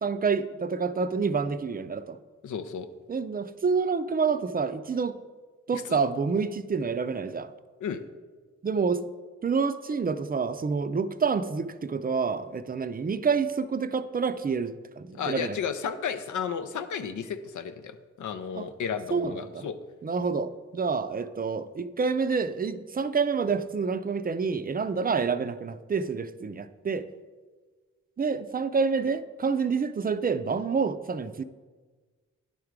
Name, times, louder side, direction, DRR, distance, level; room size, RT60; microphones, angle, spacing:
voice 1, 0.0-2.2 3.1-5.2 5.7-7.5 8.6-9.0 9.4-15.6 18.6-18.7 19.1-19.7 20.0-27.1 28.2-31.4, right 5 dB, 30° right, 11 dB, 0.4 m, -28 dB
voice 2, 2.4-2.9 5.7-6.0 7.8-8.0 15.1-19.8, left 7 dB, 85° left, 10 dB, 0.5 m, -33 dB
10.0 x 3.7 x 4.7 m, 1.4 s
cardioid pair, 45°, 30 cm